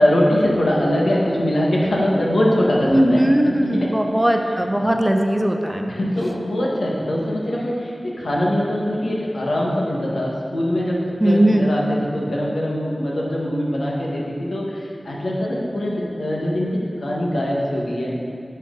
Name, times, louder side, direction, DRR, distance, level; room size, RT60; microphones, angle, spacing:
voice 1, 0.0-3.9 5.9-16.7 17.0-18.1, left 1 dB, 85° left, -4 dB, 1.8 m, -22 dB
voice 2, 2.9-5.9 11.2-11.7, right 1 dB, 10° right, 3 dB, 0.7 m, -18 dB
10.5 x 7.5 x 4.0 m, 2.4 s
wide cardioid pair, 75°, 0 cm